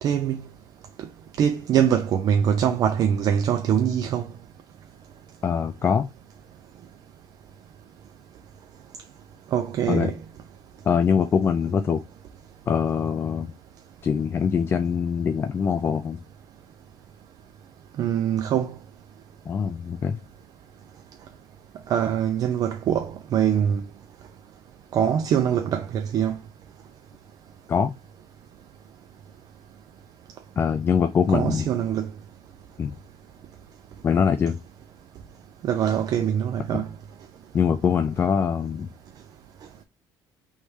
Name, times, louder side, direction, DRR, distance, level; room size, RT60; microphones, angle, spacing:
voice 1, 0.0-0.4 1.4-4.3 9.5-10.1 18.0-18.7 21.9-23.8 24.9-26.4 31.3-32.1 35.6-36.9, right 9 dB, 45° right, 0.5 m, -23 dB
voice 2, 5.4-6.1 9.9-10.1 10.9-12.0 12.7-13.5 14.0-16.2 19.5-20.2 27.7-27.9 30.6-31.7 32.8-32.9 34.0-34.6 36.7-36.8 37.5-38.9, left 6 dB, 30° left, 0.4 m, -23 dB
3.2 x 3.2 x 4.8 m
cardioid pair, 155°, 8 cm